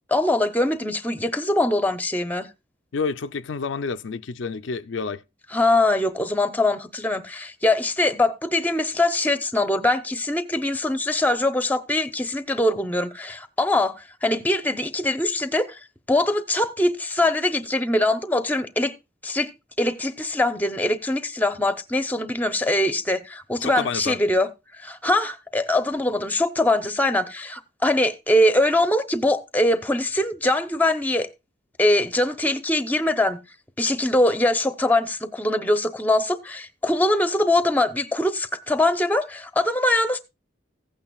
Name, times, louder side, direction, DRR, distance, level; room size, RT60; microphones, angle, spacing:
voice 1, 0.1-2.5 5.5-15.8 16.1-18.9 19.2-19.5 19.8-24.5 24.8-31.3 31.8-33.4 33.8-40.2, left 1 dB, 10° left, 0.8 m, -22 dB
voice 2, 2.9-5.2 23.6-24.2, left 5 dB, 85° left, 0.5 m, -29 dB
15.5 x 8.8 x 2.3 m
head